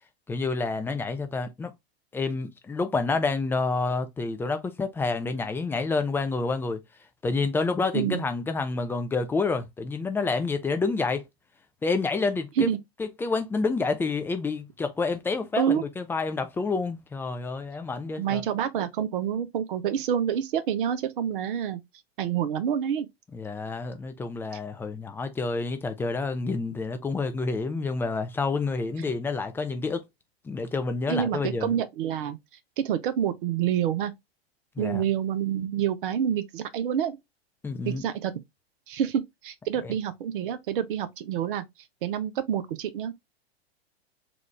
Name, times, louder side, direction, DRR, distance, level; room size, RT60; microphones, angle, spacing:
voice 1, 0.3-1.7 2.1-6.8 7.2-11.2 11.8-12.7 13.0-18.4 23.3-30.0 30.4-31.8 34.8-35.0 37.6-38.0 39.8-39.9, left 3 dB, 5° left, 0.4 m, -28 dB
voice 2, 18.2-21.8 22.2-23.1 31.1-32.4 32.8-34.1 34.8-37.2 37.8-38.3 38.9-41.6 42.0-43.1, right 9 dB, 55° right, 0.7 m, -27 dB
4.0 x 2.4 x 3.1 m
figure-of-eight pair, 100°, 32 cm